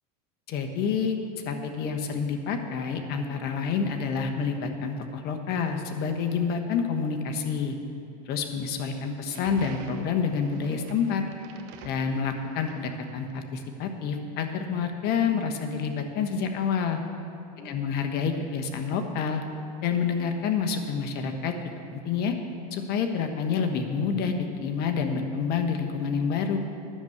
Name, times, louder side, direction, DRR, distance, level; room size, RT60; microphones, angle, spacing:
voice 1, 0.5-1.2 1.4-7.8 8.3-11.2 11.8-17.0 17.6-19.4 19.8-21.5 21.9-22.3 22.7-26.6, left 6 dB, 50° left, 5 dB, 1.3 m, -28 dB
sound 1, 9.2-13.5, right 6 dB, 60° right, 1.2 m, -49 dB
10.5 x 7.1 x 7.9 m, 2.6 s
supercardioid pair, 105°, 20 cm